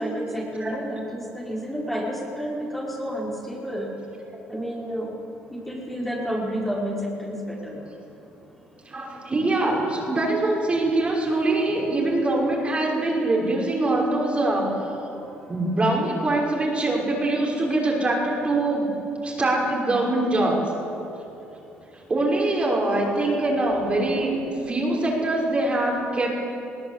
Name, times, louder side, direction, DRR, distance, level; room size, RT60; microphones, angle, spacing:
voice 1, 0.0-3.9 4.5-5.1 5.7-7.8 22.9-23.3, equal, 5° left, -4 dB, 5.5 m, -30 dB
voice 2, 8.9-14.8 15.5-18.9 19.2-20.7 22.1-26.3, right 2 dB, 30° right, -2 dB, 6.1 m, -23 dB
21.5 x 17.5 x 8.6 m, 2.9 s
supercardioid pair, 80°, 4 cm